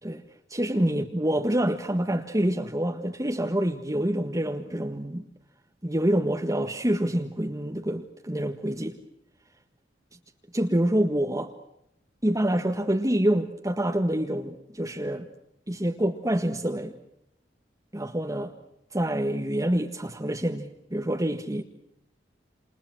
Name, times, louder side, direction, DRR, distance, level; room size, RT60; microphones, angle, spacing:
voice 1, 0.5-5.2 5.8-9.0 10.5-11.5 12.2-15.3 15.7-16.9 17.9-18.5 18.9-21.6, right 1 dB, 20° right, 1.7 m, -26 dB
29.5 x 28.5 x 6.2 m
head